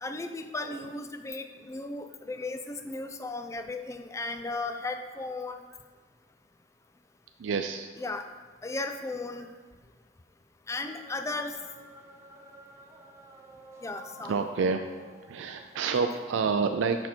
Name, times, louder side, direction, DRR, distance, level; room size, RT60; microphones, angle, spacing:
voice 1, 0.0-5.6 8.0-8.2 8.6-9.5 10.7-11.5 13.8-14.4, left 3 dB, 15° left, 7 dB, 0.3 m, -35 dB
voice 2, 0.5-0.9 7.4-7.9 14.2-14.8 15.3-17.1, right 5 dB, 75° right, 7 dB, 0.3 m, -28 dB
sound 1, 10.8-16.3, right 2 dB, 15° right, 0.7 m, -51 dB
6.3 x 5.6 x 4.4 m, 1.5 s
head